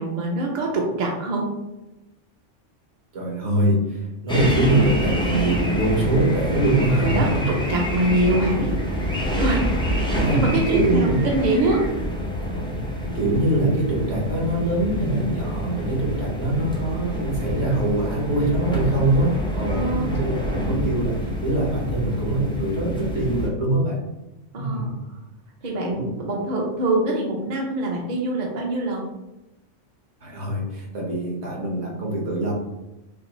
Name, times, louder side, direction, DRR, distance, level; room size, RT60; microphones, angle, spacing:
voice 1, 0.0-1.5 7.0-8.8 9.3-11.8 19.7-20.1 24.5-24.9 25.6-29.1, right 2 dB, 45° right, -1 dB, 0.7 m, -24 dB
voice 2, 3.1-7.5 10.1-11.3 13.0-24.0 24.5-24.9 25.9-26.1 30.2-32.5, right 1 dB, 65° right, -3 dB, 1.4 m, -23 dB
sound 1, 4.3-23.5, equal, 10° left, 0.3 m, -27 dB
5.7 x 2.0 x 3.0 m, 0.97 s
omnidirectional pair, 1.3 m